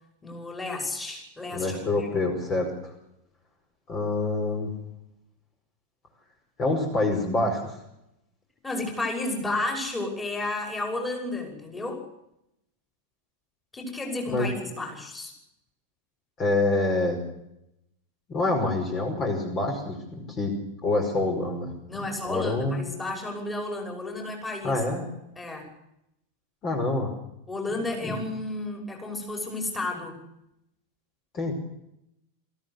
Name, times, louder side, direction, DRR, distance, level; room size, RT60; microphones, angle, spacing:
voice 1, 0.2-2.1 8.6-12.0 13.7-15.3 21.9-24.8 25.4-25.7 27.5-30.2, left 2 dB, 10° left, 2 dB, 5.9 m, -32 dB
voice 2, 1.5-2.7 3.9-4.7 6.6-7.8 14.3-14.5 16.4-17.2 18.3-20.6 20.8-21.7 22.2-22.8 24.6-25.1 26.6-27.1 28.0-28.2 31.3-31.5, left 2 dB, 30° left, 2 dB, 5.2 m, -26 dB
23.0 x 15.0 x 8.2 m, 0.83 s
figure-of-eight pair, 90°, 0 cm